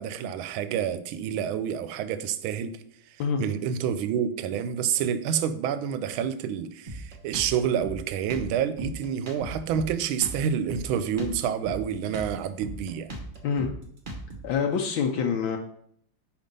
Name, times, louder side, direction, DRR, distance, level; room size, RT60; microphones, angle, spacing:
voice 1, 0.0-2.8 3.4-13.1, right 8 dB, 80° right, 11 dB, 1.4 m, -28 dB
Drum kit, 6.9-14.5, right 1 dB, 35° right, 0.8 m, -38 dB
voice 2, 14.4-15.6, left 6 dB, 75° left, 3 dB, 1.4 m, -26 dB
5.2 x 5.2 x 5.3 m, 0.66 s
omnidirectional pair, 2.3 m